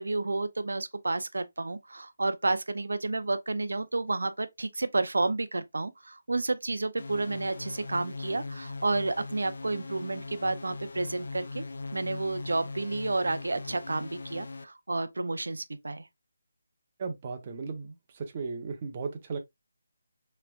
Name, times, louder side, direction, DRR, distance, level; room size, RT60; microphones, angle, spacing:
voice 1, 0.0-11.6 11.9-16.1, right 2 dB, 80° right, 0.7 m, -31 dB
sound 1, 7.0-14.6, left 3 dB, 65° left, 0.6 m, -40 dB
voice 2, 17.0-19.4, right 4 dB, 30° right, 1.0 m, -36 dB
5.9 x 3.3 x 2.4 m
figure-of-eight pair, 165°, 0 cm